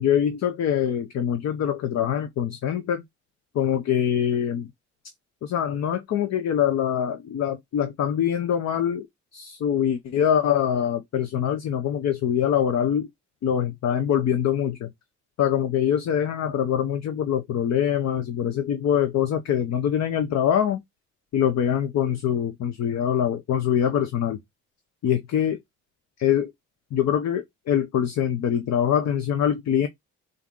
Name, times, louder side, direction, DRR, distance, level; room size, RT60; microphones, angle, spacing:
voice 1, 0.0-3.0 3.5-4.7 5.4-9.1 9.3-13.1 13.4-14.9 15.4-20.8 21.3-24.4 25.0-25.6 26.2-26.5 26.9-29.9, left 9 dB, 60° left, 0.7 m, -24 dB
4.1 x 2.5 x 3.6 m
cardioid pair, 90°, 30 cm